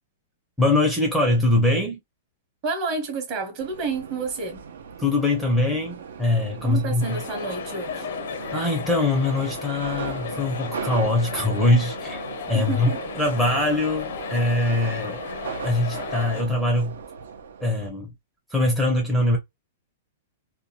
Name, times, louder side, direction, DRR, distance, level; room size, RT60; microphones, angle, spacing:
voice 1, 0.6-2.0 5.0-7.0 8.5-12.9 13.2-15.3 15.6-16.9 17.6-18.1 18.5-19.4, left 2 dB, ahead, 0.5 m, -22 dB
voice 2, 2.6-4.6 6.6-8.1 12.5-13.0, right 4 dB, 30° right, 0.8 m, -30 dB
Subway metro underground, 3.6-17.9, right 6 dB, 90° right, 0.6 m, -37 dB
sound 1, 7.0-16.4, left 7 dB, 65° left, 0.5 m, -35 dB
2.6 x 2.2 x 2.6 m
supercardioid pair, 170°, 0 cm